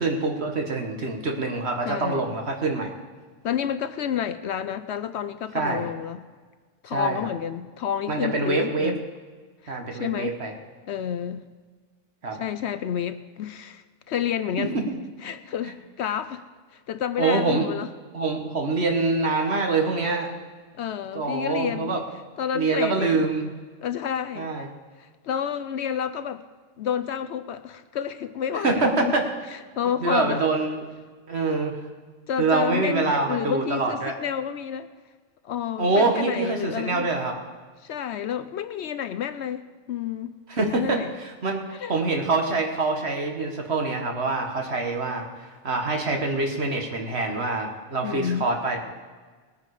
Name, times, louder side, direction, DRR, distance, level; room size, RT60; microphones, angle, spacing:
voice 1, 0.0-2.9 5.5-5.9 6.9-7.3 8.1-8.9 9.7-10.5 12.2-12.4 14.6-14.7 17.2-17.7 18.1-20.3 21.1-22.0 22.5-23.5 24.4-24.7 28.6-29.2 30.0-30.9 31.3-31.8 32.4-34.1 35.8-37.4 40.5-48.8, right 3 dB, 55° right, 3 dB, 1.8 m, -25 dB
voice 2, 1.9-2.4 3.4-6.2 6.8-9.0 9.6-10.3 10.9-11.4 12.4-14.8 15.2-16.4 16.7-17.9 20.8-21.9 22.4-23.2 23.8-24.5 25.0-26.4 26.8-29.2 29.5-30.4 32.3-34.9 35.4-37.1 37.8-39.6 39.9-40.3 40.7-41.1 41.7-41.9 48.0-48.4, left 9 dB, 65° left, 12 dB, 0.8 m, -30 dB
19.5 x 9.3 x 4.9 m, 1.5 s
omnidirectional pair, 1.3 m